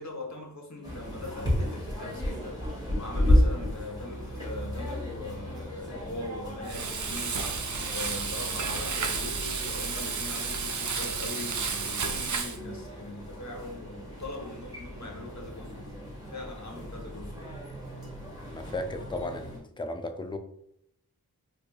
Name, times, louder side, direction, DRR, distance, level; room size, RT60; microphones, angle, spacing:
voice 1, 0.0-17.4, left 2 dB, 45° left, 0.9 m, -41 dB
sound 1, 0.8-19.6, left 1 dB, 10° right, 1.2 m, -33 dB
Frying (food), 6.6-12.6, right 5 dB, 50° right, 0.4 m, -32 dB
voice 2, 18.5-20.4, left 2 dB, 15° left, 0.3 m, -35 dB
4.4 x 2.6 x 2.3 m
wide cardioid pair, 70°, 38 cm